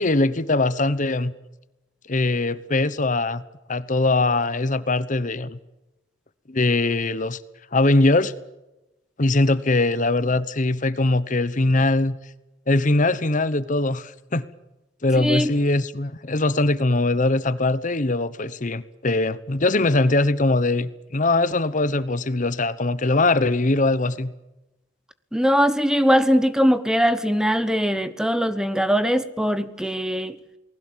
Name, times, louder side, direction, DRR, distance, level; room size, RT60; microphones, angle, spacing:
voice 1, 0.0-1.3 2.1-3.4 3.7-5.6 6.5-7.4 7.7-8.3 9.2-12.2 12.7-14.5 15.0-24.3, left 2 dB, 40° left, 1.0 m, -21 dB
voice 2, 15.1-15.5 25.3-30.4, equal, 5° right, 1.0 m, -21 dB
28.5 x 19.5 x 7.5 m
head